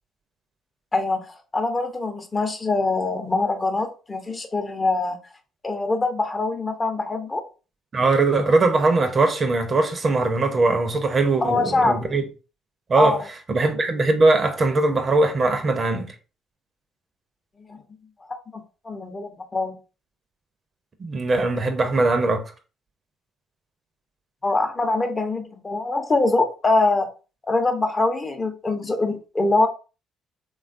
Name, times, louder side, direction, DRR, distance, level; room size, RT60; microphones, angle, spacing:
voice 1, 0.9-1.2 1.5-5.2 5.6-7.4 11.4-12.2 12.9-13.2 17.7-17.8 18.3-19.8 24.4-27.1 27.5-29.7, left 3 dB, 30° left, 0.7 m, -23 dB
voice 2, 7.9-12.2 12.9-13.2 13.5-16.1 21.0-22.4, right 3 dB, 40° right, 0.5 m, -20 dB
3.2 x 2.3 x 2.5 m
hypercardioid pair, 55°, 0 cm